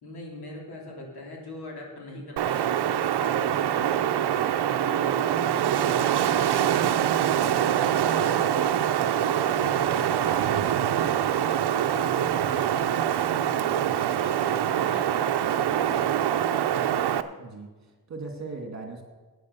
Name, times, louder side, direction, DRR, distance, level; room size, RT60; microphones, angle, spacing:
voice 1, 0.0-4.2 4.8-8.8 9.3-13.9 14.2-16.1, left 1 dB, 70° left, -1 dB, 3.4 m, -42 dB
Wind, 2.4-17.2, right 10 dB, 80° right, 0.7 m, -24 dB
voice 2, 17.4-19.0, right 3 dB, 45° right, 3 dB, 2.2 m, -38 dB
11.0 x 9.1 x 6.8 m, 1.3 s
wide cardioid pair, 155°, 39 cm